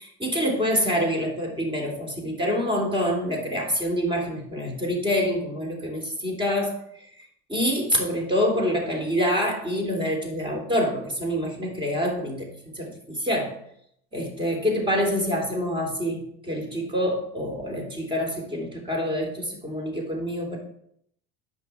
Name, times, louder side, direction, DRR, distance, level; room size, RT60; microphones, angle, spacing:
voice 1, 0.0-12.5 12.7-13.5 14.1-20.6, equal, 15° right, 0 dB, 3.2 m, -26 dB
10.5 x 5.7 x 4.7 m, 0.70 s
supercardioid pair, 110°, 32 cm